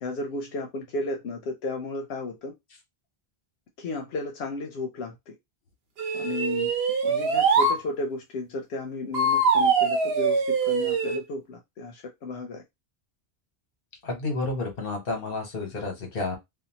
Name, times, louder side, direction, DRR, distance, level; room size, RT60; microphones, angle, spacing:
voice 1, 0.0-2.5 3.8-5.3 6.1-6.7 7.0-12.6, left 2 dB, 85° left, 0.8 m, -33 dB
sound 1, 6.0-7.8 9.1-11.2, right 4 dB, 75° right, 0.9 m, -23 dB
voice 2, 14.0-16.4, left 2 dB, 65° left, 1.2 m, -30 dB
2.6 x 2.2 x 2.7 m
omnidirectional pair, 1.0 m